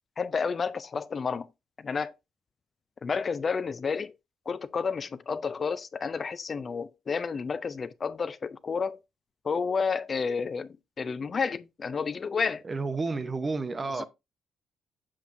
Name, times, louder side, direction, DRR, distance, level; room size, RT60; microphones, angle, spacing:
voice 1, 0.2-1.5 1.8-2.1 3.0-4.1 4.5-9.0 9.4-12.6 13.9-14.0, left 5 dB, 40° left, 0.4 m, -31 dB
voice 2, 12.6-14.0, right 3 dB, 30° right, 0.7 m, -31 dB
7.5 x 5.9 x 2.6 m
cardioid pair, 90°, 0 cm